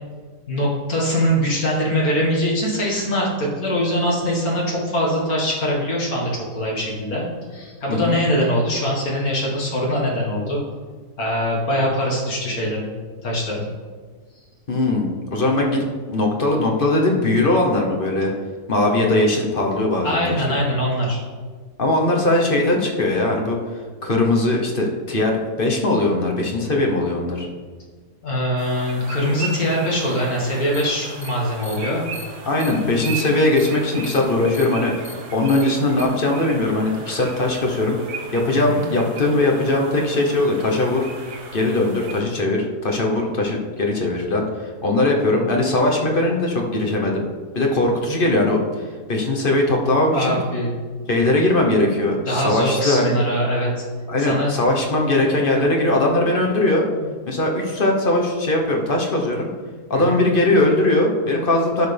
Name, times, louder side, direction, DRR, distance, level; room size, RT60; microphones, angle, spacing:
voice 1, 0.5-7.3 7.5-10.6 11.2-12.9 13.2-13.6 20.0-21.2 28.2-32.1 38.6-38.8 50.1-50.7 52.3-53.8 54.2-54.6 59.9-60.2, equal, 60° left, -4 dB, 2.2 m, -22 dB
voice 2, 14.7-18.3 18.7-20.2 20.5-20.6 21.8-23.6 24.0-27.5 32.5-38.0 38.3-41.1 41.5-44.5 44.8-47.2 47.5-50.4 51.1-53.1 54.1-56.8 57.3-59.5 59.9-61.9, left 2 dB, 40° left, 1 dB, 1.1 m, -20 dB
sound 1, 28.6-42.2, right 4 dB, 75° right, 1.7 m, -37 dB
sound 2, 30.7-30.8 31.2-31.3 31.6-31.8 32.1-32.2 32.6-32.7 33.0-33.2 33.6-33.7 34.0-34.2 34.5-34.6 35.0-35.1 35.5-35.6 36.0-36.1, left 1 dB, 20° left, 1.6 m, -38 dB
11.0 x 6.6 x 3.4 m, 1.5 s
omnidirectional pair, 1.7 m